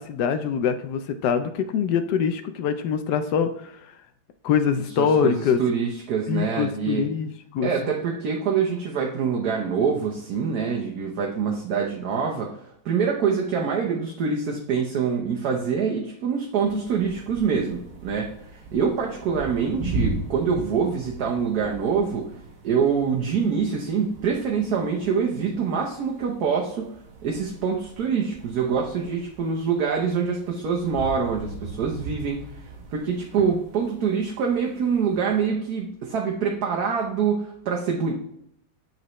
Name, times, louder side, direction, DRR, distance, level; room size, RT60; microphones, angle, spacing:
voice 1, 0.0-3.7 4.4-5.6 6.3-7.9, left 7 dB, 75° left, 9 dB, 1.1 m, -24 dB
voice 2, 5.0-7.1 7.6-12.6 12.8-22.3 22.6-26.9 27.2-38.1, right 6 dB, 65° right, -1 dB, 1.3 m, -25 dB
sound 1, 16.6-35.5, right 2 dB, 90° right, 1.9 m, -38 dB
8.8 x 4.0 x 3.1 m, 0.75 s
omnidirectional pair, 1.9 m